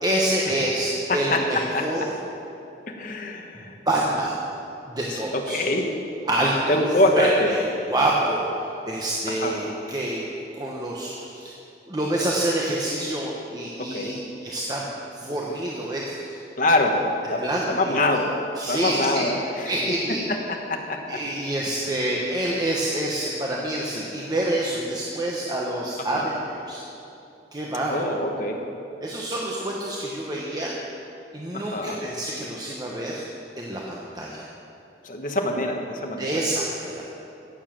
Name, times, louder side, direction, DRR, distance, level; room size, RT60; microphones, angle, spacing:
voice 1, 0.0-2.0 3.9-4.4 4.9-5.6 6.3-6.8 7.1-8.5 8.8-10.3 10.5-11.5 11.9-14.8 15.1-16.4 17.4-17.9 18.6-19.2 19.6-20.2 21.1-26.8 27.5-28.2 29.0-30.8 31.3-33.2 33.6-34.5 36.2-37.0, right 1 dB, 20° right, -3 dB, 1.1 m, -27 dB
voice 2, 1.1-1.9 2.9-3.8 5.1-5.9 6.7-7.5 9.3-9.6 13.8-14.2 16.6-18.4 18.7-20.0 20.3-21.2 26.1-26.3 27.9-28.6 31.5-32.0 35.0-36.4, left 1 dB, 45° left, 3 dB, 1.3 m, -25 dB
16.5 x 7.2 x 7.5 m, 2.8 s
head